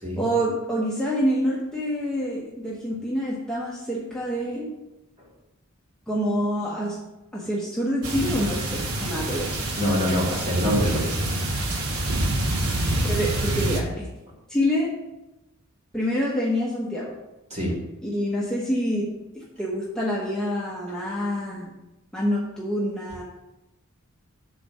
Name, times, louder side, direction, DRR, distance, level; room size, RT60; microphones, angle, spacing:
voice 1, 0.2-4.7 6.1-7.0 7.3-9.5 13.0-14.1 14.5-14.9 15.9-17.2 18.0-21.7 22.1-23.2, equal, 5° left, -5 dB, 1.1 m, -27 dB
sound 1, 8.0-13.8, right 1 dB, 90° right, 1.5 m, -26 dB
voice 2, 9.8-11.3 17.5-17.8, equal, 30° right, -4 dB, 2.6 m, -25 dB
7.3 x 4.2 x 6.5 m, 0.97 s
head